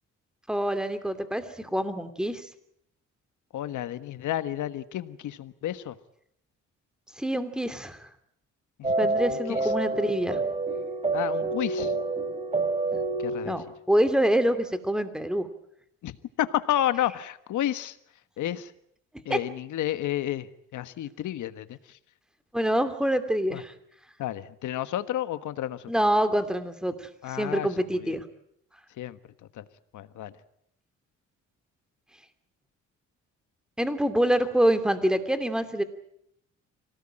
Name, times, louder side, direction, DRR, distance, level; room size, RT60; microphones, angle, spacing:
voice 1, 0.5-2.5 7.2-8.1 9.0-10.4 13.4-15.5 19.3-19.4 22.5-23.7 25.9-27.1 27.4-28.2 33.8-35.8, right 1 dB, ahead, 10 dB, 2.7 m, -26 dB
voice 2, 3.5-6.0 8.8-8.9 9.3-9.7 11.1-11.9 13.2-13.6 16.0-18.0 18.4-18.7 19.2-22.0 23.5-23.6 24.2-25.9 27.2-27.7 28.0-28.1 29.0-29.2 29.5-29.6 29.9-30.3, left 12 dB, 75° left, 12 dB, 1.5 m, -31 dB
sound 1, 8.8-13.7, right 2 dB, 20° right, 3.3 m, -28 dB
26.0 x 18.5 x 8.9 m, 0.74 s
cardioid pair, 90°, 30 cm